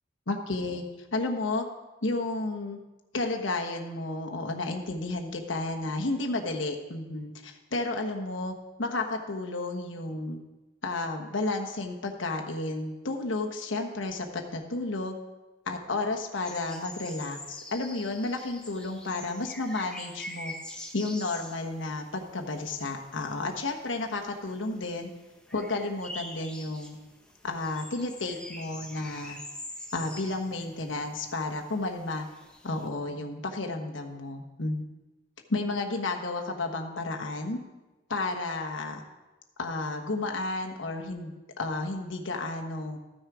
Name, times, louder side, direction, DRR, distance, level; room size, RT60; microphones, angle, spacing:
voice 1, 0.3-1.6 2.0-2.8 3.1-10.4 10.8-15.2 15.7-20.5 20.9-25.1 25.5-27.0 27.4-29.4 29.9-32.2 32.6-34.8 35.5-37.6 38.1-39.0 39.6-43.0, left 2 dB, 80° left, 3 dB, 1.2 m, -32 dB
sound 1, 16.4-32.9, left 1 dB, 5° left, 0.9 m, -45 dB
14.0 x 6.4 x 4.9 m, 1.1 s
head